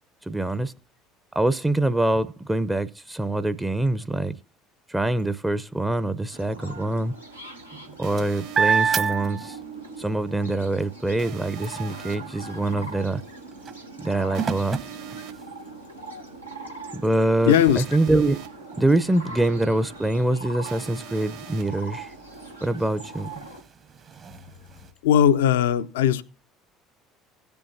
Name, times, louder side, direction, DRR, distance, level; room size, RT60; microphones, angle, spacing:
voice 1, 0.3-0.7 1.4-4.4 4.9-7.1 8.0-9.6 10.0-13.2 14.0-14.8 16.9-18.4 18.8-22.1 22.6-23.3, right 2 dB, 10° right, 0.6 m, -24 dB
sound 1, 6.3-23.6, right 3 dB, 90° right, 1.0 m, -41 dB
sound 2, 7.7-10.0 10.4-15.9 16.5-16.6 16.9-24.9, right 7 dB, 40° right, 1.0 m, -32 dB
sound 3, 8.0-9.0 11.2-12.2 14.3-15.3 17.5-18.5 20.6-21.6, right 8 dB, 65° right, 1.8 m, -43 dB
voice 2, 17.5-17.8 25.0-26.2, left 9 dB, 70° left, 0.4 m, -18 dB
16.5 x 6.9 x 2.6 m
figure-of-eight pair, 60°, 0 cm